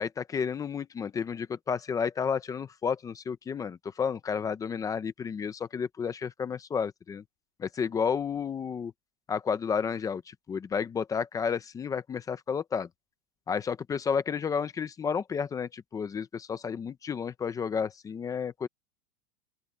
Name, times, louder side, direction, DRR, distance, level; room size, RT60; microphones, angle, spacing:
voice 1, 0.0-7.2 7.6-8.9 9.3-12.9 13.5-18.7, left 6 dB, 10° left, 0.4 m, -31 dB
open air
supercardioid pair, 140°, 45 cm